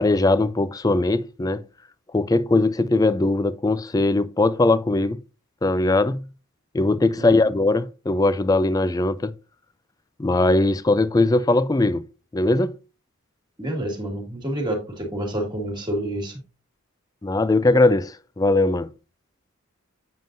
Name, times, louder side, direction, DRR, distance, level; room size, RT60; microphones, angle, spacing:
voice 1, 0.0-1.6 2.1-5.2 5.6-6.2 6.7-9.3 10.2-12.0 12.3-12.8 17.2-18.9, left 2 dB, 15° left, 0.3 m, -20 dB
voice 2, 13.6-16.4, right 1 dB, 20° right, 1.9 m, -28 dB
7.4 x 7.3 x 2.6 m
head